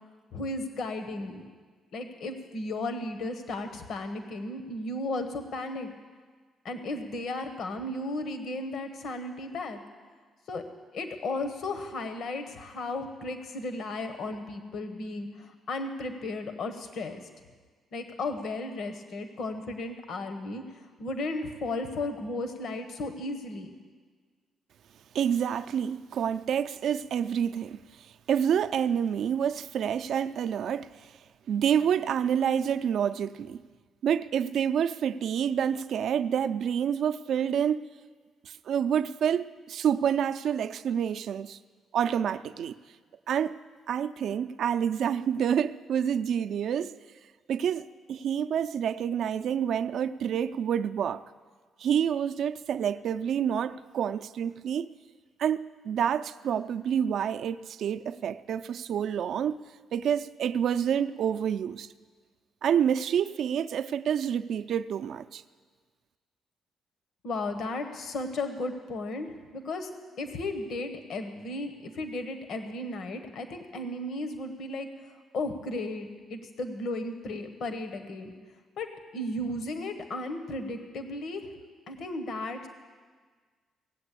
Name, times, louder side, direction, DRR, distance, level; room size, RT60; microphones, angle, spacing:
voice 1, 0.3-1.5 1.9-5.9 6.6-9.8 10.5-10.6 10.9-17.2 17.9-20.6 21.0-23.7 67.2-69.3 69.5-69.9 70.2-74.9 75.3-78.3 78.8-81.5 81.9-82.7, left 2 dB, 70° left, 1.2 m, -35 dB
voice 2, 25.1-31.1 31.5-33.6 34.0-37.8 38.4-41.6 41.9-42.8 43.3-43.6 43.9-46.9 47.5-51.2 51.8-54.9 55.4-59.6 59.9-61.9 62.6-65.4, right 8 dB, 70° right, 0.4 m, -28 dB
17.5 x 7.9 x 8.4 m
cardioid pair, 90°, 0 cm